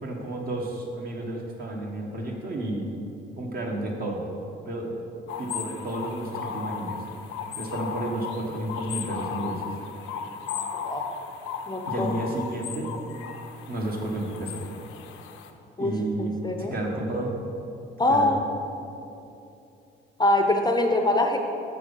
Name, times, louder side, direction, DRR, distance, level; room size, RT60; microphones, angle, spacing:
voice 1, 0.0-2.9 3.4-4.3 4.6-5.0 5.4-7.0 7.5-9.6 11.9-12.9 13.7-14.6 15.8-17.3 18.1-18.4, right 1 dB, 50° right, 0 dB, 1.5 m, -31 dB
sound 1, 5.3-15.5, left 7 dB, 90° left, 0.6 m, -36 dB
voice 2, 11.7-12.1 15.8-15.9 16.2-16.7 18.0-18.5 20.2-21.4, left 1 dB, 20° left, 4 dB, 0.6 m, -23 dB
6.9 x 6.2 x 5.4 m, 2.8 s
cardioid pair, 90°, 20 cm